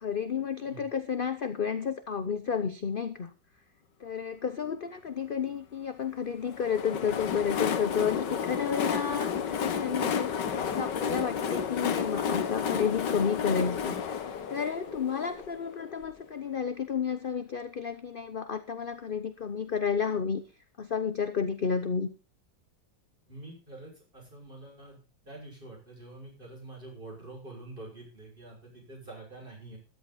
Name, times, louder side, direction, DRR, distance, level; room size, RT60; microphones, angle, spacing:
voice 1, 0.0-3.3 4.0-10.3 10.7-14.2 14.5-20.4 20.8-22.1, left 6 dB, 45° left, 10 dB, 0.7 m, -31 dB
Train, 6.5-16.1, left 7 dB, 70° left, 1.8 m, -32 dB
voice 2, 23.3-25.0 25.2-29.8, right 2 dB, 25° right, 0 dB, 6.7 m, -46 dB
14.0 x 11.5 x 4.2 m, 0.33 s
omnidirectional pair, 2.0 m